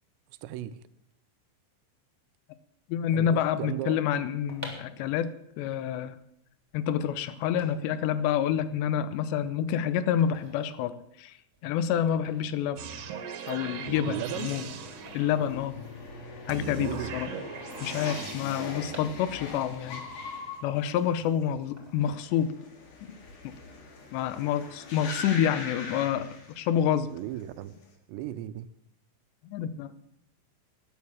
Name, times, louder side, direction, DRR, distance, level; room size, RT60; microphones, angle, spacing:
voice 1, 0.4-0.8 3.1-4.0 14.0-14.5 16.8-17.1 27.1-27.7 28.1-28.7, right 13 dB, 85° right, 2.8 m, -36 dB
voice 2, 2.9-6.2 6.7-11.4 11.6-12.9 13.5-14.7 15.1-15.8 16.5-17.3 17.8-20.0 20.6-22.5 23.4-23.5 24.1-26.3 26.6-27.1 29.5-29.9, left 9 dB, 80° left, 2.8 m, -28 dB
sound 1, 4.5-16.4 16.6-16.7 16.9-19.8 20.2-21.2 21.8-22.8 23.1-23.4, right 1 dB, 5° right, 2.3 m, -50 dB
sound 2, 12.8-15.7 16.5-18.3, right 6 dB, 65° right, 2.5 m, -39 dB
sound 3, 13.9-27.0 27.3-27.8, left 3 dB, 50° left, 2.4 m, -42 dB
13.0 x 9.5 x 7.1 m
omnidirectional pair, 5.1 m